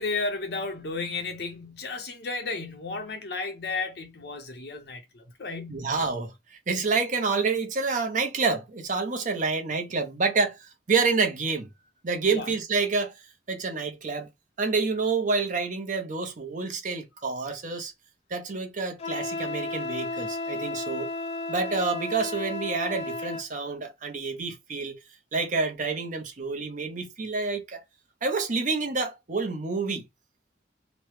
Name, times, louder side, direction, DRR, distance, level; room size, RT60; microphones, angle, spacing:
voice 1, 0.0-5.8 12.3-12.5, left 3 dB, 65° left, 0.9 m, -33 dB
voice 2, 5.7-11.7 12.0-13.2 13.5-14.3 14.6-17.9 18.3-21.1 21.5-24.9 25.3-27.8 28.2-30.0, right 4 dB, 45° right, 0.7 m, -28 dB
Wind instrument woodwind instrument, 19.0-23.5, left 2 dB, 35° left, 0.4 m, -33 dB
3.1 x 2.1 x 3.0 m
head